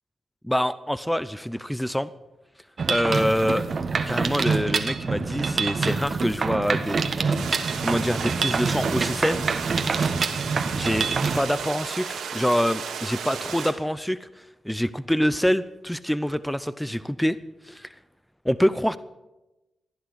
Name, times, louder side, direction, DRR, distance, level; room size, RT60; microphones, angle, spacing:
voice 1, 0.4-2.1 2.9-3.7 4.0-9.5 10.7-11.1 11.3-17.4 17.6-17.9 18.4-19.0, equal, 5° left, 15 dB, 0.7 m, -26 dB
Mechanisms, 2.8-11.4, right 4 dB, 55° right, 1.4 m, -26 dB
sound 1, 7.3-13.7, right 6 dB, 90° right, 2.4 m, -33 dB
16.0 x 10.5 x 8.3 m, 1.0 s
supercardioid pair, 50°, 0 cm